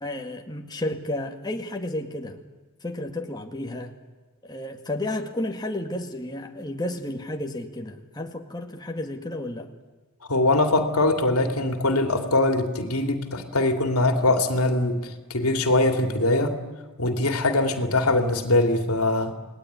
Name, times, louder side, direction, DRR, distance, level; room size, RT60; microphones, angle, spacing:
voice 1, 0.0-2.4 2.8-3.9 4.4-9.7, left 1 dB, 20° left, 3 dB, 1.9 m, -32 dB
voice 2, 10.3-16.6 17.0-19.3, left 2 dB, 85° left, 6 dB, 2.8 m, -22 dB
29.0 x 19.5 x 9.6 m, 1.3 s
head